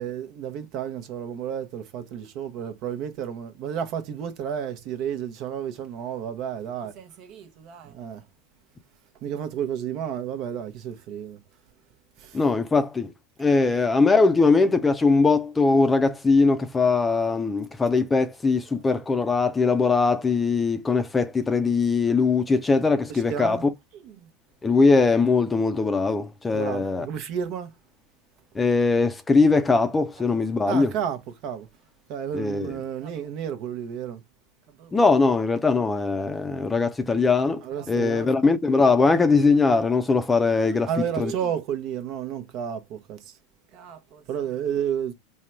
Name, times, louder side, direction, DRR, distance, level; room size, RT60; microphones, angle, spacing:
voice 1, 0.0-8.2 9.2-11.4 12.2-12.4 13.4-13.7 23.1-23.7 23.9-24.3 26.5-27.7 30.2-31.7 32.1-34.2 34.8-35.0 37.6-38.3 40.9-43.4 43.7-45.1, right 9 dB, 50° right, 0.8 m, -32 dB
voice 2, 12.3-13.1 13.4-23.6 24.6-27.1 28.6-30.9 32.3-32.7 34.9-40.9 41.2-41.3, left 4 dB, 15° left, 0.5 m, -21 dB
3.7 x 2.1 x 4.4 m
hypercardioid pair, 115°, 0 cm